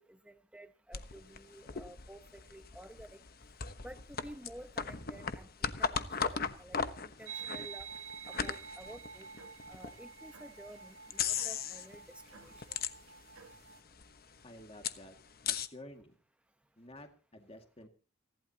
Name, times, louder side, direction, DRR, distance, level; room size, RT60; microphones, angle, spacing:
voice 1, 0.0-3.2 3.8-7.9 8.3-9.3 9.7-12.8, right 1 dB, 5° right, 9 dB, 1.0 m, -52 dB
sound 1, 0.9-10.0 10.5-10.6 11.1-12.0 12.3-13.4 13.7-13.8 13.9-15.7, left 6 dB, 50° left, 1.1 m, -37 dB
sound 2, 7.2-13.8, right 6 dB, 85° right, 1.5 m, -48 dB
voice 2, 14.4-15.2 15.5-16.2 16.8-17.9, left 1 dB, 30° left, 5 dB, 2.1 m, -52 dB
30.0 x 12.0 x 2.9 m, 0.35 s
head